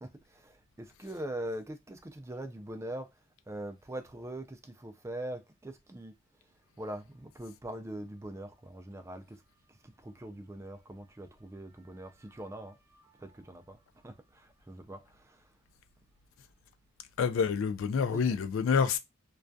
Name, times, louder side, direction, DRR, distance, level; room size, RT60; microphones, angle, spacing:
voice 1, 0.0-3.1 3.5-6.1 6.8-9.4 9.8-15.5 18.0-18.4, right 1 dB, 15° right, 0.3 m, -42 dB
voice 2, 17.2-19.0, left 6 dB, 75° left, 0.3 m, -27 dB
2.6 x 2.3 x 2.2 m
head